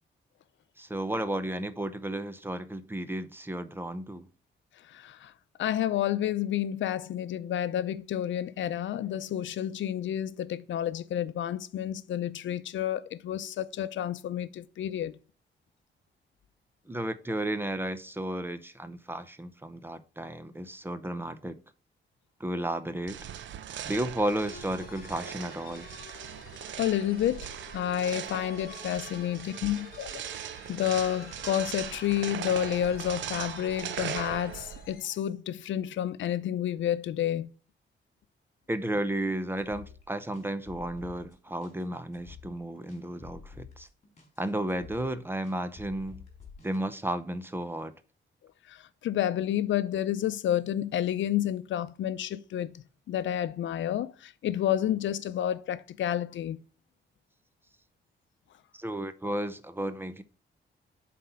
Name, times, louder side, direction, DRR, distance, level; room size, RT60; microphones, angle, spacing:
voice 1, 0.8-4.3 16.9-21.6 22.4-23.2 23.8-25.9 38.7-43.9 44.4-46.2 46.6-47.9 58.7-60.2, right 1 dB, 10° right, 0.6 m, -33 dB
voice 2, 4.8-5.3 5.6-15.1 26.8-30.3 30.7-37.5 48.7-56.6, left 11 dB, 75° left, 0.6 m, -30 dB
sound 1, 23.1-35.0, right 10 dB, 75° right, 0.6 m, -40 dB
sound 2, 24.5-35.2, left 7 dB, 50° left, 1.2 m, -51 dB
sound 3, 39.6-46.8, left 5 dB, 35° left, 3.7 m, -50 dB
7.5 x 4.2 x 5.7 m
cardioid pair, 135°, 20 cm